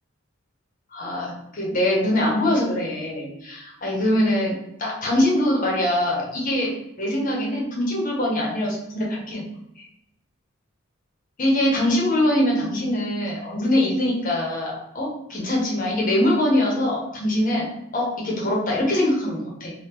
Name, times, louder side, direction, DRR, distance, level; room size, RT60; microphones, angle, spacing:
voice 1, 0.9-9.4 9.8-9.9 11.4-17.7 17.9-19.7, left 1 dB, 40° left, -2 dB, 0.7 m, -23 dB
3.6 x 2.1 x 2.8 m, 0.79 s
head